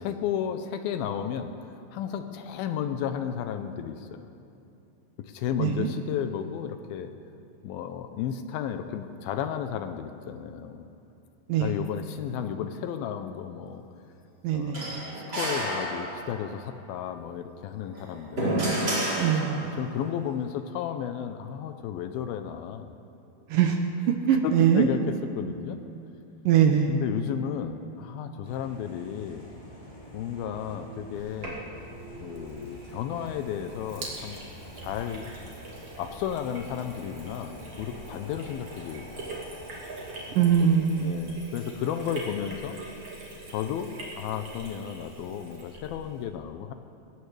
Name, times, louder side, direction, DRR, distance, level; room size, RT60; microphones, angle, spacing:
voice 1, 0.0-1.5 1.9-4.2 5.2-7.1 7.6-10.9 11.6-13.8 14.5-15.0 15.3-18.7 19.3-19.4 19.8-22.9 24.4-25.8 26.9-29.5 30.1-31.6 32.2-34.4 34.8-35.3 36.0-39.4 41.0-42.8 43.5-46.7, left 9 dB, 80° left, 8 dB, 2.4 m, -33 dB
voice 2, 5.6-5.9 11.5-11.7 14.4-14.8 19.2-19.7 23.5-23.8 24.1-24.9 26.5-27.0 40.4-41.5, right 8 dB, 75° right, 4 dB, 2.1 m, -22 dB
sound 1, 14.7-16.5 17.8-19.9, right 1 dB, 25° right, 4.9 m, -30 dB
sound 2, 28.4-40.4, equal, 15° left, 2.7 m, -46 dB
Sink (filling or washing), 31.1-46.2, right 2 dB, 40° right, 3.2 m, -43 dB
21.0 x 18.0 x 3.3 m, 2.8 s
omnidirectional pair, 4.6 m